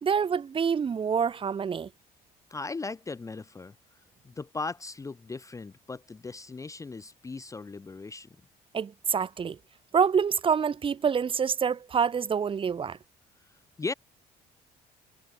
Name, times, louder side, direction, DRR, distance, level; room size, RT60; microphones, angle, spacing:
voice 1, 0.0-1.9 8.7-9.6 9.9-13.0, right 6 dB, 30° right, 1.1 m, -26 dB
voice 2, 2.5-3.7 4.2-8.3 13.8-13.9, left 3 dB, 20° left, 0.8 m, -37 dB
cardioid pair, 110°, 17 cm